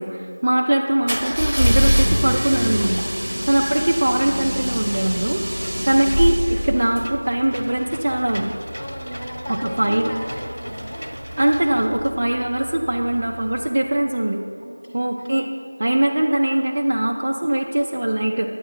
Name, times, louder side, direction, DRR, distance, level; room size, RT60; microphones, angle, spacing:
voice 1, 0.0-2.9 3.5-5.4 5.9-8.5 9.5-10.1 11.4-14.4 14.9-15.4 15.8-18.5, right 1 dB, 25° right, -1 dB, 0.3 m, -21 dB
sound 1, 1.1-7.1, equal, 90° right, 0.6 m, -23 dB
voice 2, 3.2-3.5 5.7-5.8 8.8-11.0 14.6-15.4, equal, 10° left, -7 dB, 0.7 m, -36 dB
Engine / Mechanisms, 4.7-13.7, equal, 65° right, 0.8 m, -36 dB
9.3 x 8.6 x 3.6 m, 2.4 s
figure-of-eight pair, 175°, 0 cm